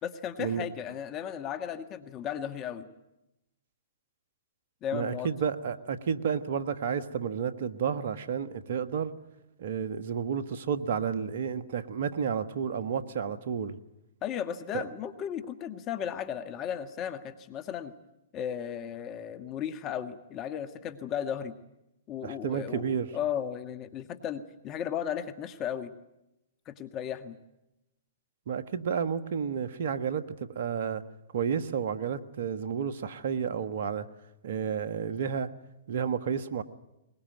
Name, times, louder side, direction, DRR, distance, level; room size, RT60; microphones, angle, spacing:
voice 1, 0.0-2.9 4.8-5.3 14.2-17.9 18.3-21.6 22.1-25.9 26.6-27.4, left 9 dB, 30° left, 9 dB, 1.5 m, -35 dB
voice 2, 4.9-9.1 9.6-13.8 14.7-14.8 22.2-23.1 28.5-31.0 31.3-34.1 34.4-35.5 35.9-36.6, right 7 dB, 60° right, 11 dB, 1.5 m, -31 dB
22.0 x 21.0 x 9.3 m, 0.91 s
hypercardioid pair, 115°, 0 cm